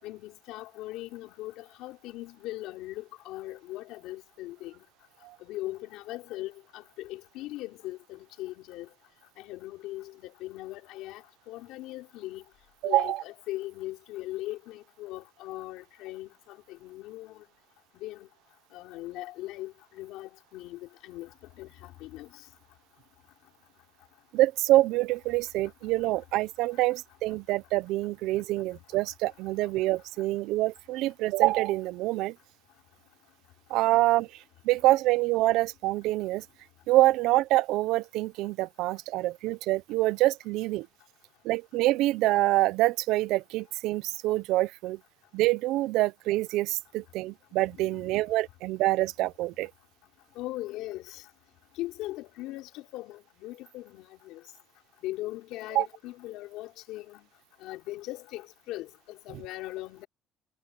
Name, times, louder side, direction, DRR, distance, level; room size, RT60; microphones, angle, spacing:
voice 1, 0.0-4.8 5.4-8.9 9.4-12.4 12.8-17.4 17.9-18.3 18.7-22.4 29.6-29.7 47.7-48.1 50.3-51.3 51.7-54.4 55.0-57.3 57.6-60.1, left 17 dB, 90° left, 4.6 m, -40 dB
voice 2, 12.8-13.2 24.3-32.3 33.7-34.3 34.6-36.4 36.9-40.9 41.4-45.0 45.3-49.7 55.7-55.9, right 17 dB, 85° right, 0.6 m, -26 dB
cardioid pair, 135°, 0 cm